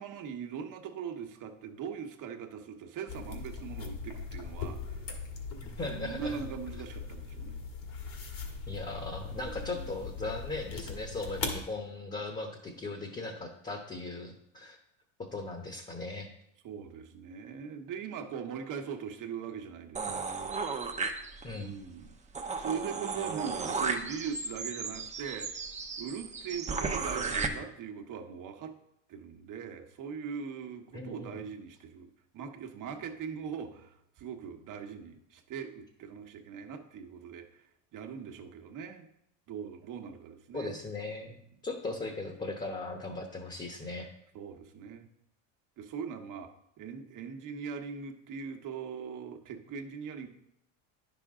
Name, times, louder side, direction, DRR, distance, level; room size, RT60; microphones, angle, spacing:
voice 1, 0.0-5.1 5.8-7.6 9.3-9.9 16.6-20.2 21.5-22.1 22.6-25.5 26.0-28.7 29.1-37.6 37.9-39.1 39.5-40.8 44.3-45.1 45.8-46.5 46.8-50.3, right 7 dB, 50° right, 5 dB, 1.2 m, -41 dB
sound 1, 3.1-11.6, left 4 dB, 55° left, 1.8 m, -40 dB
voice 2, 5.6-6.4 8.7-14.8 15.2-16.3 21.4-21.7 30.9-31.4 40.5-44.1, left 2 dB, 20° left, 3 dB, 1.1 m, -38 dB
sound 2, 19.9-21.6 22.0-22.1 22.3-27.5, right 4 dB, 20° right, 0.8 m, -35 dB
9.8 x 6.1 x 3.7 m, 0.76 s
supercardioid pair, 110°, 40 cm